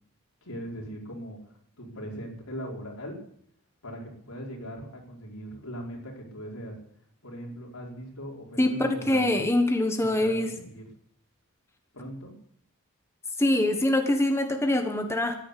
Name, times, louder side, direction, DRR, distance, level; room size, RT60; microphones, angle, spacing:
voice 1, 0.4-3.1 3.8-6.8 7.2-9.4 10.0-10.9 11.9-12.3, equal, 85° left, -1 dB, 5.2 m, -40 dB
voice 2, 8.6-10.5 13.4-15.3, left 1 dB, 10° left, 5 dB, 1.3 m, -24 dB
14.5 x 11.0 x 8.4 m, 0.65 s
head